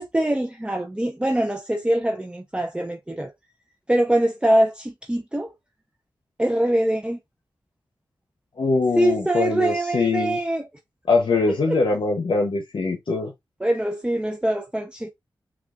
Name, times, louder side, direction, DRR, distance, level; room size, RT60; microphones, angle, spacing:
voice 1, 0.0-3.3 3.9-5.5 6.4-7.2 9.0-10.7 11.7-11.8 13.6-15.1, right 1 dB, 10° right, 0.5 m, -23 dB
voice 2, 8.6-10.4 11.1-13.3, left 3 dB, 80° left, 0.8 m, -22 dB
6.0 x 2.4 x 2.4 m
cardioid pair, 50°, 9 cm